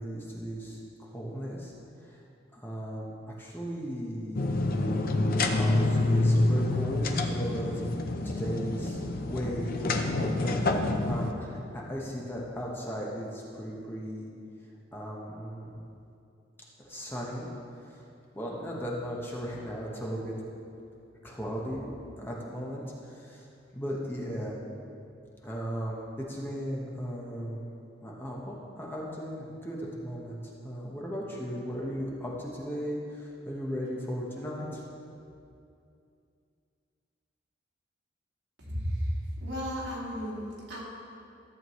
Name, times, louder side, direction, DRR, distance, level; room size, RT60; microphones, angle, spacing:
voice 1, 0.0-1.7 2.1-2.2 2.5-4.5 4.8-4.9 5.2-7.8 8.2-10.6 11.0-14.3 14.9-15.8 16.9-17.5 18.3-20.3 21.2-21.9 22.2-22.8 23.1-23.4 23.7-24.6 25.4-27.6 28.0-34.8, equal, 10° left, -4 dB, 1.1 m, -36 dB
sound 1, 4.3-11.3, left 2 dB, 50° left, 0.6 m, -27 dB
voice 2, 39.4-40.8, equal, 65° right, -5 dB, 2.3 m, -35 dB
14.0 x 7.5 x 3.1 m, 2.6 s
head